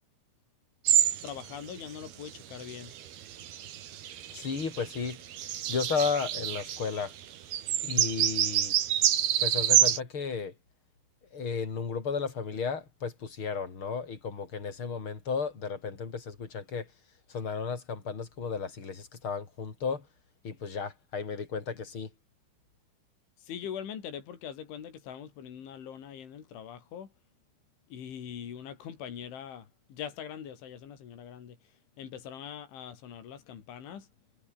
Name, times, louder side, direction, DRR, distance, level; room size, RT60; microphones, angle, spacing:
sound 1, 0.9-1.3 1.7-1.8 2.5-6.9 7.2-7.3 7.5-10.0, right 11 dB, 60° right, 3.6 m, -27 dB
voice 1, 1.2-2.9 23.4-27.1 27.9-34.1, left 8 dB, 80° left, 6.1 m, -42 dB
voice 2, 4.3-5.2 5.7-7.1 7.8-8.8 9.4-10.5 11.3-16.9 17.3-20.0 20.4-22.1, left 5 dB, 30° left, 4.0 m, -34 dB
omnidirectional pair, 5.4 m